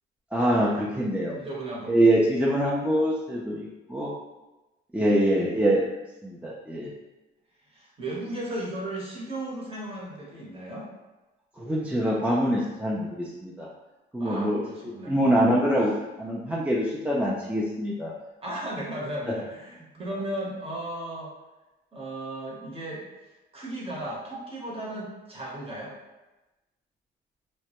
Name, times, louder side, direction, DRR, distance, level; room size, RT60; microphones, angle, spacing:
voice 1, 0.3-1.3 1.9-4.1 4.9-5.9 6.2-6.9 11.6-13.7 14.1-14.6 15.1-15.9 16.2-18.1, right 1 dB, 5° right, -6 dB, 0.3 m, -24 dB
voice 2, 1.4-2.0 5.0-5.2 7.7-10.9 14.2-15.4 18.4-21.3 21.9-23.0 23.5-25.9, right 1 dB, 30° right, -4 dB, 0.8 m, -35 dB
2.1 x 2.0 x 2.8 m, 1.1 s
cardioid pair, 90°, 20 cm